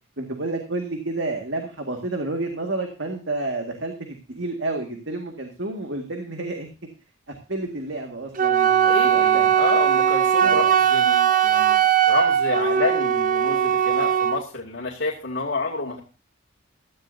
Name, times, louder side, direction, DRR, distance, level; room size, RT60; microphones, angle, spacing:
voice 1, 0.2-6.7 7.3-9.9 10.4-10.7, right 2 dB, 65° right, 3 dB, 1.9 m, -30 dB
Wind instrument woodwind instrument, 8.4-14.4, right 9 dB, 40° right, 0.6 m, -19 dB
voice 2, 8.8-16.0, left 3 dB, 60° left, -3 dB, 2.5 m, -29 dB
16.5 x 14.0 x 2.7 m, 0.31 s
head